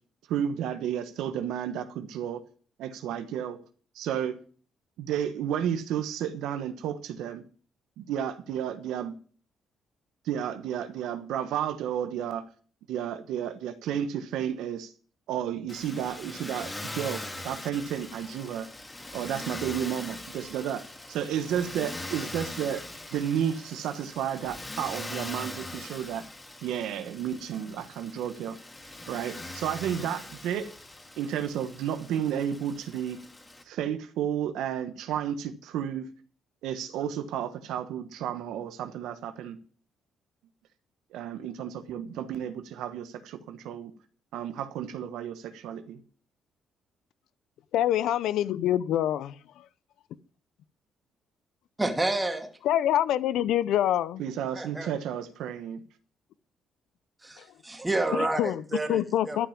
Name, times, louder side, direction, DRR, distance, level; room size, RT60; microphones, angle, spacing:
voice 1, 0.3-2.4 2.8-3.6 3.9-4.4 5.0-7.4 8.0-9.1 10.2-12.4 12.9-14.9 15.3-16.7 16.9-18.7 19.1-22.8 23.1-26.2 26.6-28.6 29.1-30.7 31.2-33.2 33.7-36.1 36.6-39.6 41.1-43.9 44.3-46.0 54.2-55.8, right 9 dB, 90° right, 1.1 m, -32 dB
Motor vehicle (road), 15.7-33.6, left 1 dB, 15° left, 2.0 m, -41 dB
voice 2, 47.7-49.6 52.6-54.2 57.4-57.5 58.1-58.6 58.9-59.5, left 12 dB, 85° left, 0.5 m, -26 dB
voice 3, 51.8-52.5 54.5-54.9 57.2-59.4, right 2 dB, 15° right, 2.4 m, -29 dB
12.5 x 5.8 x 8.6 m
cardioid pair, 90°, 0 cm